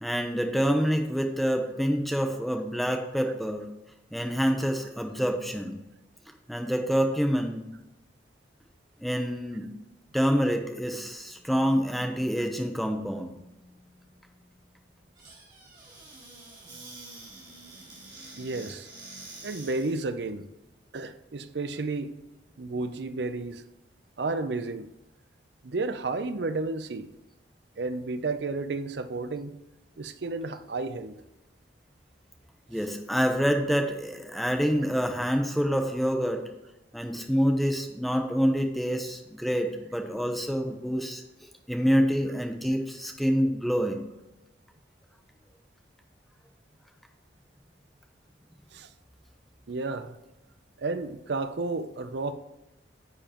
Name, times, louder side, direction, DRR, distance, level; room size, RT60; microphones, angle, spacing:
voice 1, 0.0-3.7 4.1-5.8 6.5-7.7 9.0-9.7 10.1-13.3 32.7-36.4 36.9-41.2 41.7-44.0, equal, ahead, 0.7 m, -27 dB
Squeak / Cupboard open or close, 15.1-20.0, right 2 dB, 20° right, 2.8 m, -47 dB
voice 2, 18.4-18.9 19.4-20.5 20.9-22.2 22.6-23.6 24.2-24.9 25.6-27.1 27.8-29.5 30.0-31.2 48.7-48.9 49.7-50.2 50.8-52.3, right 3 dB, 65° right, 0.5 m, -32 dB
9.9 x 7.0 x 3.0 m
head